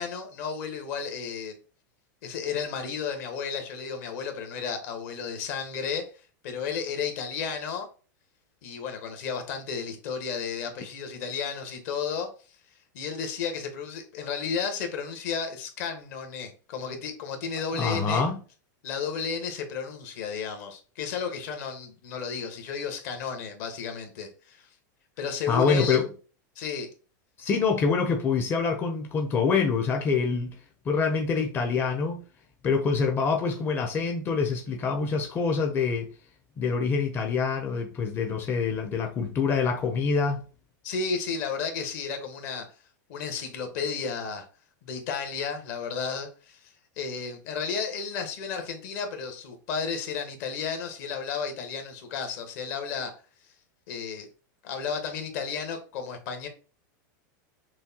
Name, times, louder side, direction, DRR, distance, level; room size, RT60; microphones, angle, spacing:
voice 1, 0.0-1.5 2.2-6.1 6.4-7.9 8.6-12.3 12.9-18.3 18.8-24.7 25.2-26.0 26.5-26.9 40.8-42.7 43.1-44.4 44.8-46.6 47.0-53.1 53.9-54.3 54.6-56.5, left 6 dB, 60° left, 1.2 m, -33 dB
voice 2, 17.7-18.4 25.5-26.1 27.4-30.6 30.8-32.2 32.6-36.1 36.6-40.4, left 5 dB, 20° left, 0.5 m, -25 dB
6.1 x 2.2 x 2.8 m
supercardioid pair, 135°, 10 cm